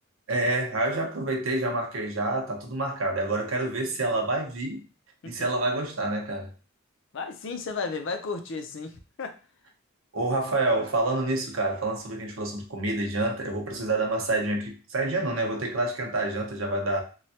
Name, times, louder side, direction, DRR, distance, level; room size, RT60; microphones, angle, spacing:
voice 1, 0.3-4.8 5.3-6.5 10.1-17.0, right 2 dB, 70° right, 0.8 m, -28 dB
voice 2, 7.1-9.4, left 4 dB, 65° left, 0.5 m, -34 dB
3.2 x 2.2 x 2.8 m
head